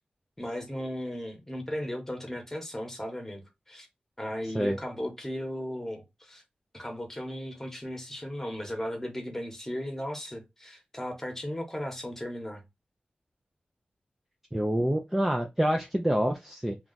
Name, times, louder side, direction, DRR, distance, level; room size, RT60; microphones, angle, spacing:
voice 1, 0.4-3.9 4.2-6.4 6.7-12.6, equal, 10° left, 1.0 m, -36 dB
voice 2, 14.5-16.8, equal, 10° right, 0.4 m, -27 dB
2.3 x 2.3 x 3.7 m
wide cardioid pair, 100°, 3 cm